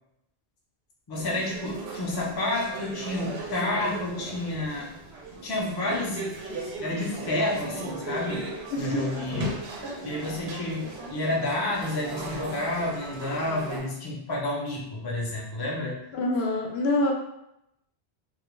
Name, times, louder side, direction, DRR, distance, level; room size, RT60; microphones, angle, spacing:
voice 1, 1.1-4.9 5.4-6.3 6.8-8.4 8.8-9.7 10.0-16.0, left 1 dB, 30° left, -3 dB, 0.4 m, -30 dB
sound 1, 1.1-13.8, right 2 dB, 85° right, 0.8 m, -37 dB
voice 2, 8.7-9.0 16.1-17.1, left 2 dB, 80° left, 0 dB, 0.8 m, -25 dB
2.3 x 2.1 x 3.0 m, 0.81 s
omnidirectional pair, 1.0 m